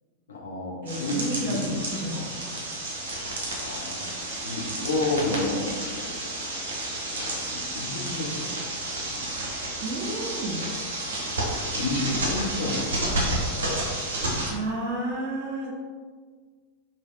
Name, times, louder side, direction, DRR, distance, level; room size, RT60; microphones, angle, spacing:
voice 1, 0.3-1.7 3.6-4.2 4.4-6.2 7.1-8.5 8.8-9.5 9.9-10.0 11.5-13.6, left 2 dB, 65° left, -3 dB, 0.6 m, -31 dB
voice 2, 0.8-2.6 9.8-10.7 14.0-15.7, right 1 dB, 50° right, -6 dB, 1.4 m, -32 dB
sound 1, 0.9-14.5, right 1 dB, 65° right, 0.6 m, -31 dB
3.2 x 2.7 x 2.2 m, 1.5 s
figure-of-eight pair, 90°, 0 cm